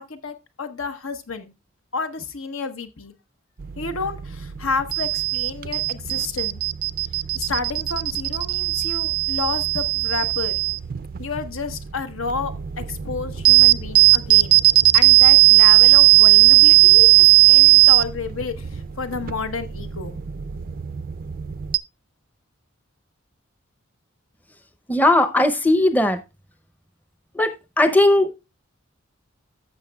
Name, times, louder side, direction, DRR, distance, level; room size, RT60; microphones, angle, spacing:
voice 1, 0.0-1.5 1.9-3.1 3.8-6.6 7.3-10.6 11.2-14.6 14.9-20.2, left 4 dB, 80° left, 1.0 m, -30 dB
sound 1, 3.6-21.8, right 22 dB, 45° right, 0.4 m, -17 dB
voice 2, 24.9-26.2 27.3-28.4, left 1 dB, 10° left, 0.6 m, -18 dB
14.5 x 6.4 x 2.3 m
head